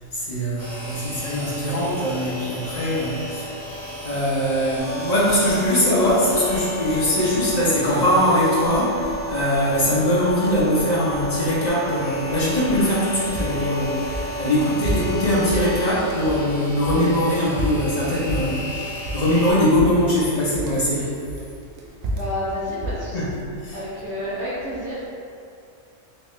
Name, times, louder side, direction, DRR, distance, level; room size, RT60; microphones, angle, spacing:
voice 1, 0.1-3.7 4.0-21.2 23.1-23.3 23.6-23.8, left 1 dB, 40° left, -8 dB, 0.8 m, -21 dB
sound 1, 0.6-19.5, equal, 35° right, 1.2 m, -36 dB
sound 2, 4.8-15.9, equal, 75° left, 0.3 m, -32 dB
sound 3, 13.1-16.5 16.8-19.5 19.8-20.9 21.3-23.4, right 1 dB, 60° right, 0.6 m, -29 dB
voice 2, 22.1-23.2 23.7-25.1, left 1 dB, 15° right, -11 dB, 0.9 m, -29 dB
3.2 x 2.7 x 3.1 m, 2.5 s
omnidirectional pair, 1.3 m